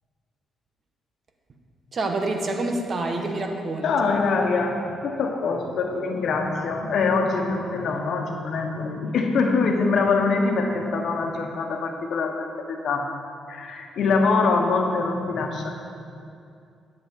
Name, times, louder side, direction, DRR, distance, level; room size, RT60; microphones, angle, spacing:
voice 1, 1.9-4.1, right 2 dB, 45° right, 4 dB, 1.1 m, -27 dB
voice 2, 3.8-13.1 13.5-15.7, left 4 dB, 65° left, 3 dB, 1.2 m, -24 dB
10.5 x 7.0 x 5.3 m, 2.5 s
cardioid pair, 90°, 0 cm